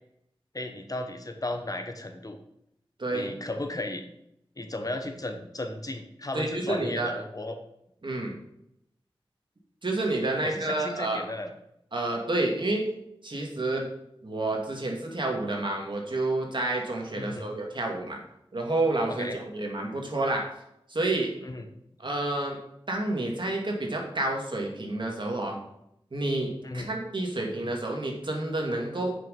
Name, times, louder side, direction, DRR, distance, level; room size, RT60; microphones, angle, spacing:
voice 1, 0.5-2.4 3.1-4.1 4.6-7.6 10.4-11.5 17.1-17.5 19.2-19.4 21.4-21.7 26.6-26.9, left 1 dB, 40° left, 5 dB, 1.2 m, -34 dB
voice 2, 3.0-3.3 6.3-7.1 8.0-8.4 9.8-11.2 11.9-12.9 13.2-13.9 14.2-18.2 18.5-20.5 20.9-21.3 22.0-22.6 22.9-25.6 26.1-29.2, right 2 dB, 55° right, 1 dB, 2.4 m, -29 dB
8.5 x 6.4 x 5.4 m, 0.77 s
wide cardioid pair, 80°, 10 cm